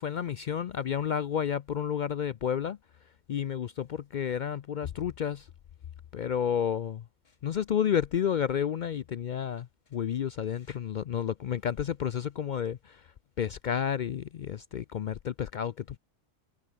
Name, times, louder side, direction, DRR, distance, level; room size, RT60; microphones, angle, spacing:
voice 1, 0.0-2.8 3.3-5.5 6.1-7.0 7.4-13.1 13.4-16.0, left 8 dB, 60° left, 0.5 m, -31 dB
omnidirectional pair, 1.3 m